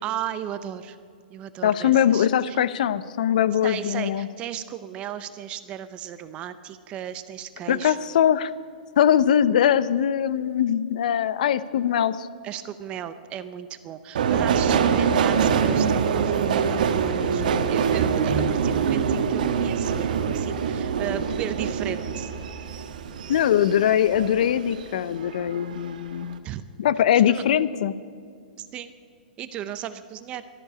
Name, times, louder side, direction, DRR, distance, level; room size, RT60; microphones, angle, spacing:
voice 1, 0.0-1.0 1.3-2.6 3.6-8.0 12.4-22.3 26.4-26.6 27.3-27.4 28.6-28.9 29.4-30.5, right 10 dB, 20° right, 12 dB, 0.6 m, -35 dB
voice 2, 1.6-4.3 7.7-8.5 9.0-12.3 23.3-26.4 26.8-27.9, left 9 dB, 60° left, 16 dB, 0.6 m, -21 dB
Subway metro underground, 14.2-24.9 25.2-26.0 26.2-26.4, right 6 dB, 60° right, 1.4 m, -24 dB
13.0 x 11.5 x 8.7 m, 2.3 s
hypercardioid pair, 155°, 5 cm